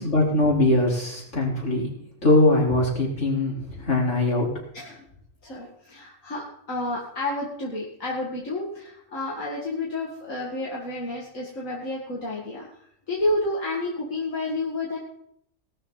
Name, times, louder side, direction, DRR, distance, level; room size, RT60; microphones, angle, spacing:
voice 1, 0.0-1.9 2.2-4.5, left 2 dB, 70° left, -4 dB, 4.7 m, -21 dB
voice 2, 5.4-15.0, left 2 dB, 85° left, -4 dB, 2.8 m, -30 dB
19.0 x 13.0 x 4.1 m, 0.74 s
omnidirectional pair, 1.3 m